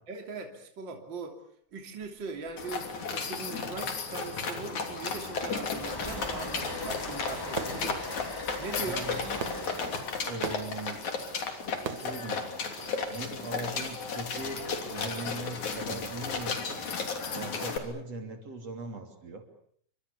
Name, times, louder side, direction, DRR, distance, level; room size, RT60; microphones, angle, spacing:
voice 1, 0.1-1.4 1.7-8.1 8.6-9.1, right 4 dB, 40° right, 4 dB, 3.7 m, -40 dB
Train, 2.5-2.8 3.0-3.2 3.6-13.7, left 1 dB, 10° left, 1.5 m, -44 dB
sound 1, 2.6-17.8, left 5 dB, 75° left, 4.7 m, -34 dB
Fireworks, 7.2-13.2, right 8 dB, 75° right, 2.8 m, -43 dB
voice 2, 8.8-9.3 10.2-11.0 11.9-12.6 13.1-16.9 17.3-19.4, right 2 dB, 55° right, 5 dB, 4.3 m, -40 dB
29.5 x 25.0 x 7.0 m, 0.62 s
omnidirectional pair, 3.3 m